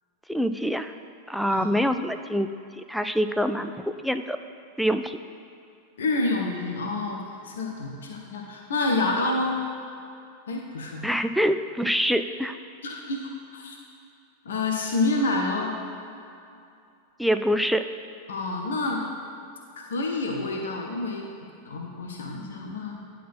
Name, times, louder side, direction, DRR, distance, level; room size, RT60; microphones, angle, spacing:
voice 1, 0.3-0.9 1.3-2.5 2.8-4.4 4.8-5.2 11.0-12.6 17.2-17.9, equal, ahead, 8 dB, 0.3 m, -25 dB
voice 2, 6.0-7.2 7.4-9.6 10.5-11.0 12.8-13.8 14.4-15.7 18.3-19.0 19.9-21.3 21.7-22.9, left 2 dB, 65° left, 1 dB, 0.8 m, -28 dB
10.0 x 4.1 x 4.3 m, 2.5 s
figure-of-eight pair, 90°, 0 cm